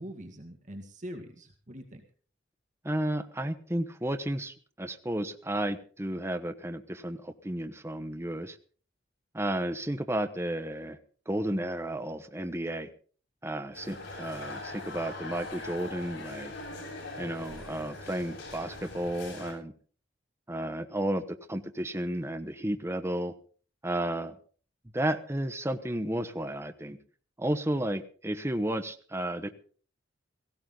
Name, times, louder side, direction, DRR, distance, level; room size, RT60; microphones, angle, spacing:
voice 1, 0.0-2.0, equal, 45° right, 3 dB, 2.0 m, -43 dB
voice 2, 2.8-8.6 9.3-11.0 11.3-12.9 13.4-16.5 17.2-19.7 20.5-23.3 23.8-24.3 24.9-27.0 27.4-29.5, right 1 dB, 15° right, 8 dB, 1.0 m, -32 dB
sound 1, 13.7-19.5, left 2 dB, 75° left, 7.6 m, -41 dB
17.5 x 16.0 x 3.9 m, 0.42 s
head